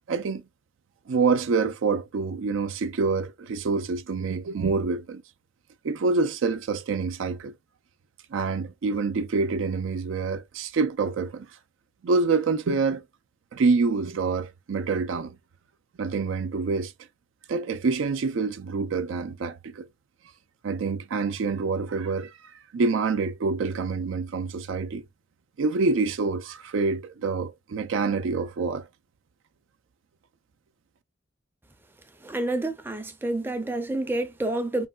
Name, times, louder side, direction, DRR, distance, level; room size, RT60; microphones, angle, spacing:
voice 1, 0.1-0.4 1.1-5.2 5.8-7.5 8.3-11.6 12.0-13.0 13.5-15.4 16.0-16.9 17.5-19.9 20.6-25.0 25.6-28.9, right 4 dB, 90° right, 0.4 m, -26 dB
voice 2, 32.2-34.9, right 2 dB, 10° right, 0.4 m, -28 dB
3.3 x 2.2 x 2.2 m
head